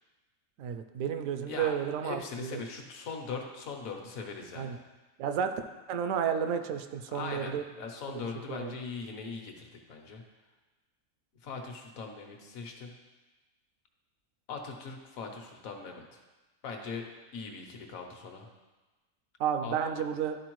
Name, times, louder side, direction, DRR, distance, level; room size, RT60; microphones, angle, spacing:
voice 1, 0.6-2.6 4.6-4.8 5.2-5.5 5.9-7.6 8.1-8.7 19.4-20.4, right 8 dB, 75° right, 7 dB, 0.9 m, -32 dB
voice 2, 2.0-4.8 7.1-10.2 11.4-12.9 14.5-16.2 16.6-17.1 17.3-18.5 19.6-19.8, left 4 dB, 75° left, 3 dB, 1.3 m, -40 dB
11.5 x 4.3 x 3.0 m, 1.2 s
omnidirectional pair, 1.5 m